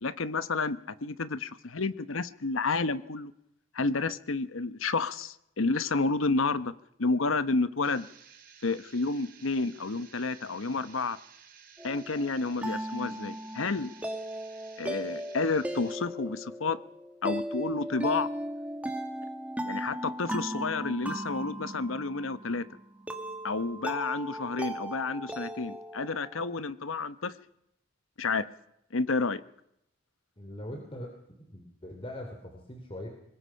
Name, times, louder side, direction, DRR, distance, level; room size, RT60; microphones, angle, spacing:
voice 1, 0.0-3.3 3.7-6.7 7.0-8.1 8.6-11.2 11.8-13.9 14.8-16.8 17.2-18.3 19.6-22.7 23.4-27.4 28.2-28.5 28.9-29.4, left 3 dB, 80° left, 13 dB, 1.0 m, -30 dB
sound 1, 7.8-16.0, right 7 dB, 45° right, 3.9 m, -55 dB
sound 2, 11.8-26.5, right 1 dB, 5° right, 1.8 m, -37 dB
voice 2, 30.4-33.1, left 1 dB, 25° left, 3 dB, 2.8 m, -42 dB
24.0 x 20.5 x 5.7 m, 0.81 s
head